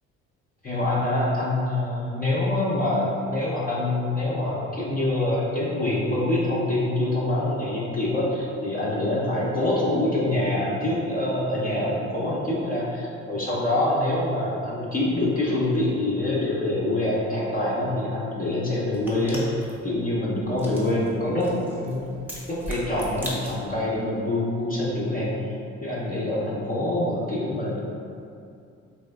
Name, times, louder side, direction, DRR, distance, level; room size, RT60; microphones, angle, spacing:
voice 1, 0.6-22.2 22.5-25.4 25.8-27.8, left 1 dB, 25° left, -7 dB, 0.6 m, -25 dB
sound 1, 18.9-23.9, equal, 5° right, 0.8 m, -40 dB
3.1 x 2.7 x 2.3 m, 2.5 s
supercardioid pair, 65°, 32 cm